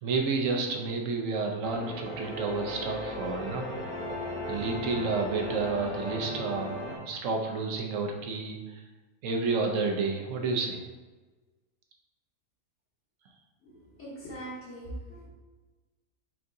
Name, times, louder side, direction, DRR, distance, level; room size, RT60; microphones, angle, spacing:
voice 1, 0.0-3.7 4.5-8.8 9.2-10.8, right 4 dB, 70° right, 2 dB, 1.0 m, -30 dB
sound 1, 1.6-7.0, left 1 dB, 10° left, 0.7 m, -36 dB
voice 2, 13.6-15.3, right 1 dB, 55° left, -10 dB, 1.4 m, -41 dB
4.5 x 3.7 x 2.6 m, 1.2 s
omnidirectional pair, 1.5 m